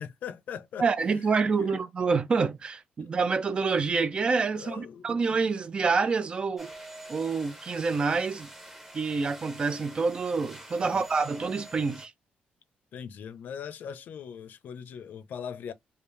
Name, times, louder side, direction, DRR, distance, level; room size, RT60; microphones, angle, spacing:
voice 1, 0.0-0.9 1.6-1.7 4.5-5.2 10.8-11.0 12.9-15.7, left 7 dB, 60° left, 0.6 m, -40 dB
voice 2, 0.8-6.7 7.1-8.5 8.9-12.1, right 4 dB, 30° right, 0.3 m, -27 dB
sound 1, 6.6-12.1, right 1 dB, 10° right, 0.7 m, -46 dB
3.3 x 2.5 x 3.1 m
cardioid pair, 155°, 3 cm